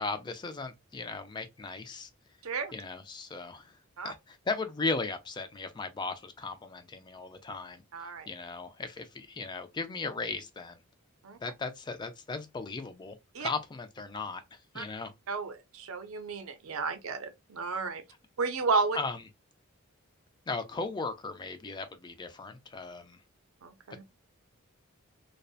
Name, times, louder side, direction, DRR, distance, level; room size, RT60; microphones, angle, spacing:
voice 1, 0.0-2.1 2.7-10.8 11.4-15.1 18.9-19.2 20.5-23.2, left 3 dB, 20° left, 0.3 m, -37 dB
voice 2, 2.4-2.7 4.0-4.1 7.9-8.3 11.2-11.4 13.3-13.5 14.8-14.9 15.3-18.0 18.4-19.0 23.6-24.0, right 4 dB, 75° right, 0.5 m, -32 dB
2.6 x 2.1 x 2.3 m
head